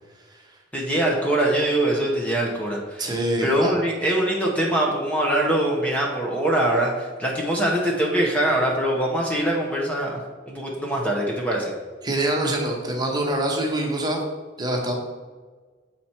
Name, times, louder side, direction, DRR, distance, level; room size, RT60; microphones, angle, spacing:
voice 1, 0.7-11.7, right 1 dB, 10° left, -2 dB, 0.8 m, -23 dB
voice 2, 3.0-3.7 12.0-14.2 14.6-15.0, right 1 dB, 25° right, 0 dB, 1.1 m, -25 dB
7.0 x 4.3 x 4.4 m, 1.4 s
head